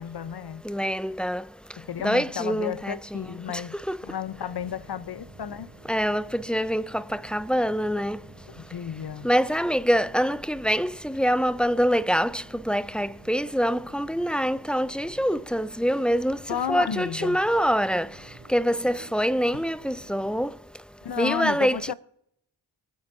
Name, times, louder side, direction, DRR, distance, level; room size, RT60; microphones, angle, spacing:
voice 1, 0.0-0.6 1.8-3.8 4.0-5.7 8.6-9.3 16.5-17.4 19.5-19.6 21.0-21.9, left 9 dB, 50° left, 0.9 m, -32 dB
voice 2, 0.7-1.4 2.0-3.2 3.9-4.0 5.9-8.2 9.2-16.4 16.7-18.1 18.5-20.5 21.2-21.9, equal, ahead, 0.5 m, -25 dB
sound 1, 4.3-20.5, right 3 dB, 45° right, 3.1 m, -51 dB
24.0 x 8.6 x 2.8 m
cardioid pair, 45°, 49 cm